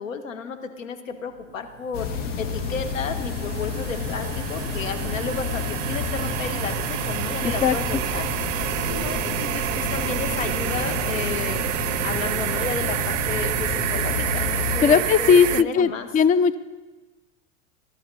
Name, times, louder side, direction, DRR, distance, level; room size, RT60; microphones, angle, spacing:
voice 1, 0.0-11.6 12.0-16.1, left 6 dB, 90° left, 8 dB, 1.6 m, -33 dB
sound 1, 1.8-15.6, right 17 dB, 75° right, 0.5 m, -29 dB
sound 2, 1.9-14.8, left 5 dB, 70° left, 2.5 m, -30 dB
sound 3, 6.9-12.0, right 5 dB, 10° right, 2.7 m, -41 dB
voice 2, 7.4-7.7 14.8-16.5, left 6 dB, 20° left, 15 dB, 0.5 m, -18 dB
22.0 x 11.5 x 4.2 m, 1.2 s
hypercardioid pair, 105°, 38 cm